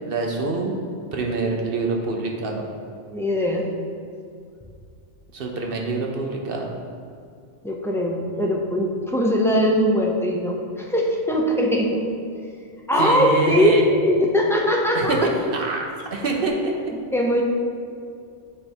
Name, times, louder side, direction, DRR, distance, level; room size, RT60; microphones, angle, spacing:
voice 1, 0.1-0.7 1.1-2.6 5.3-6.7 13.0-13.8 14.9-16.7, right 3 dB, 55° right, 1 dB, 0.8 m, -25 dB
voice 2, 3.1-3.6 7.6-12.1 12.9-15.2 17.1-17.4, equal, 5° left, -2 dB, 0.3 m, -21 dB
8.6 x 3.5 x 4.3 m, 2.4 s
omnidirectional pair, 1.3 m